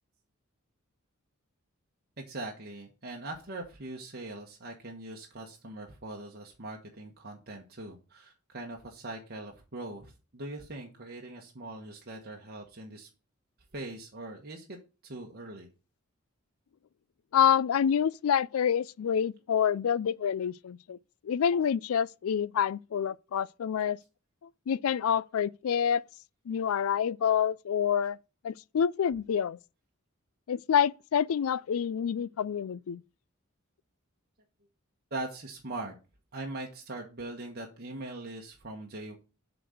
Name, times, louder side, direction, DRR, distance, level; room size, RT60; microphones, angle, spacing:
voice 1, 2.2-13.1 13.7-14.8 15.0-15.7 35.1-35.9 36.3-39.2, right 2 dB, 45° right, 1.3 m, -41 dB
voice 2, 17.3-21.0 21.2-24.0 24.7-26.0 26.5-28.2 28.4-29.6 30.5-33.0, left 8 dB, 75° left, 0.4 m, -27 dB
7.6 x 4.0 x 6.4 m
head